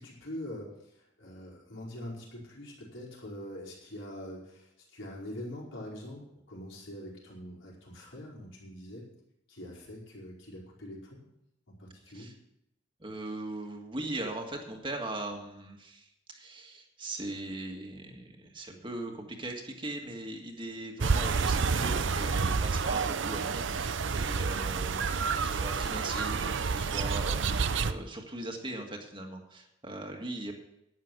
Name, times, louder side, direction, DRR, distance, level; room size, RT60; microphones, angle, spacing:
voice 1, 0.0-9.1 9.5-11.2 11.7-12.3 24.3-24.4, left 1 dB, 75° left, -4 dB, 4.8 m, -44 dB
voice 2, 13.0-30.5, right 2 dB, 25° right, 2 dB, 1.7 m, -40 dB
sound 1, 21.0-27.9, right 5 dB, 70° right, 0.6 m, -29 dB
12.0 x 9.8 x 6.2 m, 0.82 s
head